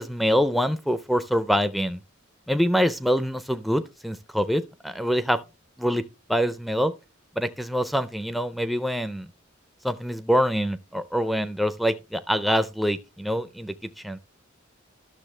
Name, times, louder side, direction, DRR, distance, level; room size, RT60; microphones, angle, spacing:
voice 1, 0.0-2.0 2.5-5.4 5.8-6.0 6.3-6.9 7.4-9.3 9.8-13.7 14.0-14.2, equal, ahead, 0.4 m, -25 dB
12.0 x 6.6 x 3.2 m
head